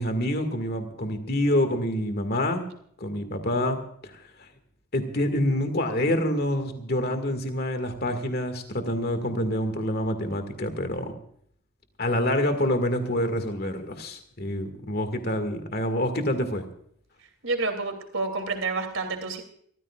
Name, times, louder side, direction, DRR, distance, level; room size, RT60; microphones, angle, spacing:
voice 1, 0.0-2.6 3.0-4.5 4.9-11.1 12.0-16.6, left 1 dB, 45° left, 8 dB, 2.0 m, -27 dB
voice 2, 17.4-19.4, right 3 dB, 65° right, 6 dB, 2.9 m, -29 dB
27.0 x 14.5 x 2.4 m, 0.65 s
head